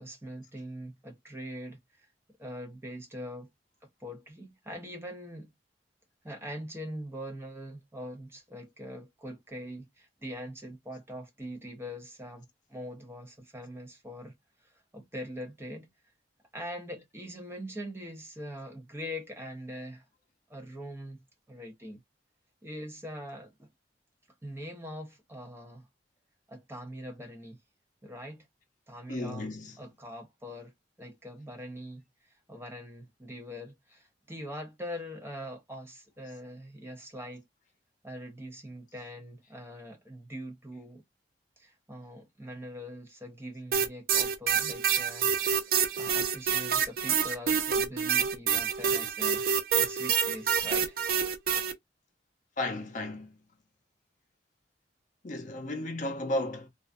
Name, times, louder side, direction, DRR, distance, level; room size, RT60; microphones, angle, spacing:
voice 1, 0.0-2.1 2.4-3.5 4.0-5.5 6.2-14.3 14.7-15.9 16.5-20.0 20.5-21.2 21.5-22.0 22.6-23.7 24.4-25.9 26.5-27.6 28.0-28.5 28.9-29.5 29.8-30.7 31.0-32.0 32.5-37.5 38.0-41.0 41.6-45.3 45.6-49.5 49.7-51.0, equal, 15° right, 0.7 m, -42 dB
voice 2, 29.1-29.8 52.6-53.3 55.2-56.7, left 1 dB, 45° left, 0.6 m, -34 dB
sound 1, 43.7-51.7, right 7 dB, 55° right, 0.4 m, -27 dB
2.4 x 2.2 x 2.4 m
head